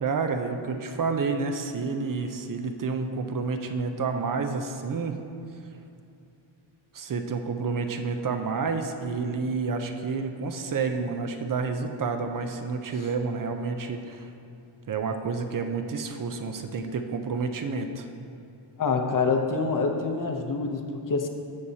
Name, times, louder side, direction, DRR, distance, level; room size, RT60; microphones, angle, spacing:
voice 1, 0.0-5.2 6.9-14.3 14.9-18.1, right 4 dB, 40° right, 6 dB, 0.6 m, -29 dB
voice 2, 18.8-21.3, left 4 dB, 40° left, 4 dB, 0.8 m, -26 dB
16.0 x 6.3 x 2.8 m, 2.6 s
wide cardioid pair, 155°, 50 cm